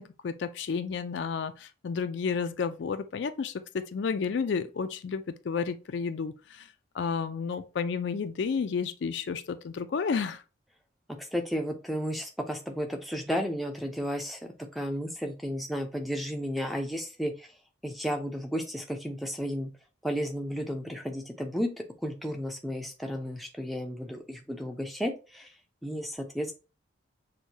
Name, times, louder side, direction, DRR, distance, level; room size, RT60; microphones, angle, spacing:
voice 1, 0.0-6.7 6.9-10.4, left 5 dB, 65° left, 0.4 m, -31 dB
voice 2, 11.2-14.4 14.7-17.5 17.8-19.7 20.0-21.7 22.0-25.5 25.8-26.5, equal, ahead, 0.5 m, -33 dB
6.2 x 2.2 x 2.7 m
head